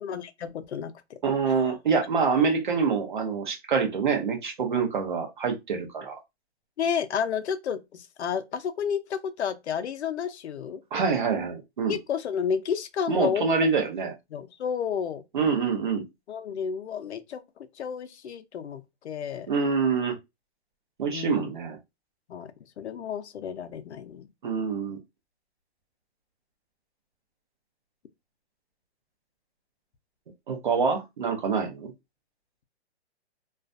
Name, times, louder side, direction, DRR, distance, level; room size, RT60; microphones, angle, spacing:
voice 1, 0.0-1.2 6.8-10.8 11.9-13.5 14.3-15.2 16.3-17.4 17.8-19.5 21.1-21.5 22.3-22.5 22.8-24.3, left 7 dB, 80° left, 0.6 m, -31 dB
voice 2, 1.2-6.2 10.9-12.0 13.1-14.1 15.3-16.0 19.5-20.2 21.0-21.8 24.4-25.0 30.5-31.9, right 5 dB, 45° right, 0.7 m, -26 dB
2.4 x 2.2 x 2.5 m
hypercardioid pair, 170°, 33 cm